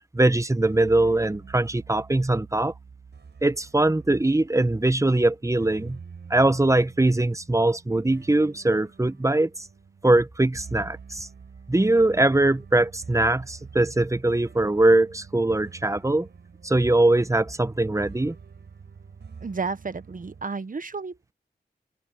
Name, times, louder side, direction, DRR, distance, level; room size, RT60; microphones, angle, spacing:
voice 1, 0.1-2.7 3.4-6.0 6.3-9.5 10.0-11.3 11.7-16.3 16.6-18.3, right 2 dB, 15° right, 1.0 m, -21 dB
sound 1, 0.6-20.4, right 5 dB, 85° right, 5.6 m, -46 dB
voice 2, 19.4-21.3, right 4 dB, 50° right, 1.2 m, -32 dB
open air
cardioid pair, 50°, 17 cm